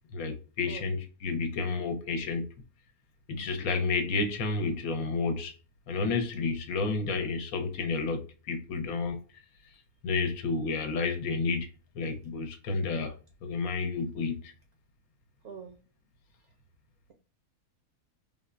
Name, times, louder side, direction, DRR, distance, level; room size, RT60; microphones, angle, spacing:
voice 1, 0.1-2.5 3.3-5.5 5.9-9.2 10.0-11.7 11.9-13.2 13.4-14.5, left 4 dB, 70° left, 1.1 m, -30 dB
voice 2, 15.4-15.8, right 6 dB, 60° right, 0.7 m, -43 dB
3.5 x 2.0 x 2.4 m
omnidirectional pair, 1.6 m